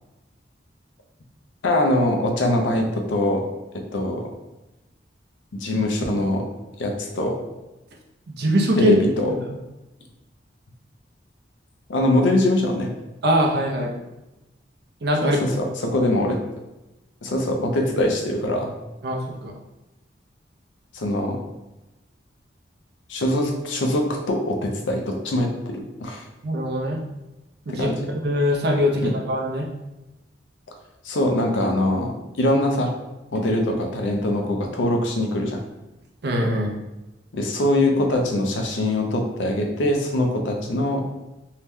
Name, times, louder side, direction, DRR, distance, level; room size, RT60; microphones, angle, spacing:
voice 1, 1.6-3.4 3.7-4.3 5.5-6.5 6.8-7.4 8.8-9.3 11.9-12.9 15.2-16.4 17.2-18.7 20.9-21.4 23.1-26.3 27.7-28.0 29.0-29.1 31.0-32.9 33.3-35.6 37.3-41.0, left 1 dB, 90° left, 3 dB, 0.5 m, -23 dB
voice 2, 8.3-9.0 9.3-9.4 13.2-13.9 15.0-15.4 19.0-19.5 26.4-27.0 27.7-27.9 28.2-29.7 36.2-36.8, equal, 60° right, 0 dB, 0.5 m, -22 dB
2.7 x 2.2 x 3.4 m, 0.99 s
head